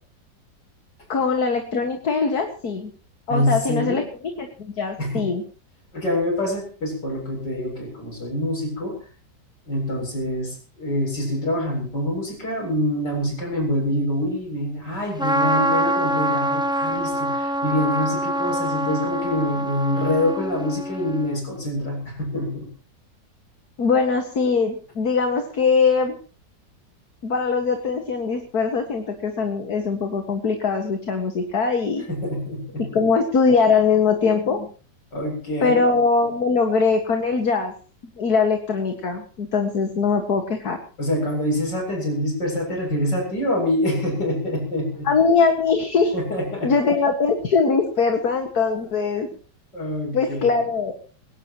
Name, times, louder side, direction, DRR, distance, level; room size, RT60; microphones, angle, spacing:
voice 1, 1.1-2.9 3.3-4.0 4.4-5.4 23.8-26.2 27.2-32.0 32.9-34.7 35.6-37.7 38.2-40.8 45.0-46.1 46.6-49.3 50.1-50.9, left 5 dB, 60° left, 4 dB, 2.4 m, -21 dB
voice 2, 3.3-4.0 5.0-5.2 5.9-9.0 9.7-22.7 32.1-33.0 35.1-35.8 41.0-45.1 46.1-46.7 49.7-50.5, left 1 dB, 80° left, 2 dB, 8.1 m, -25 dB
Trumpet, 15.2-21.4, right 1 dB, 5° right, 0.7 m, -25 dB
21.5 x 18.0 x 3.1 m, 0.39 s
omnidirectional pair, 1.8 m